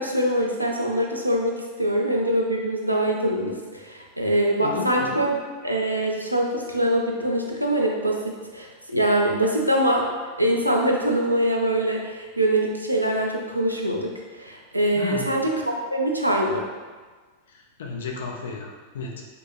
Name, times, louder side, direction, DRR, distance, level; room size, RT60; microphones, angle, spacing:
voice 1, 0.0-5.3 5.6-10.1 10.4-16.7, right 1 dB, 85° right, 0 dB, 0.3 m, -23 dB
voice 2, 4.6-5.2 15.0-15.3 17.5-19.2, left 4 dB, 60° left, 1 dB, 0.4 m, -33 dB
3.3 x 2.0 x 2.4 m, 1.4 s
figure-of-eight pair, 90°, 0 cm